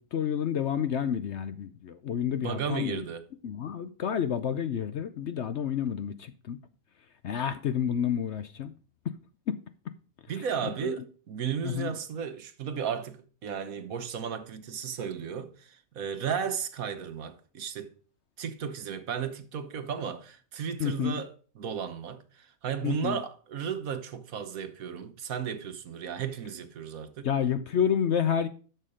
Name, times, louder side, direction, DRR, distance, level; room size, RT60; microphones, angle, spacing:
voice 1, 0.0-3.0 3.4-6.6 7.2-8.7 9.5-9.6 10.8-11.0 11.6-11.9 20.8-21.2 22.8-23.2 27.2-28.5, left 8 dB, 60° left, 0.8 m, -29 dB
voice 2, 2.3-3.3 10.3-17.9 18.4-27.3, right 7 dB, 70° right, 1.4 m, -34 dB
11.5 x 6.8 x 5.0 m
omnidirectional pair, 1.6 m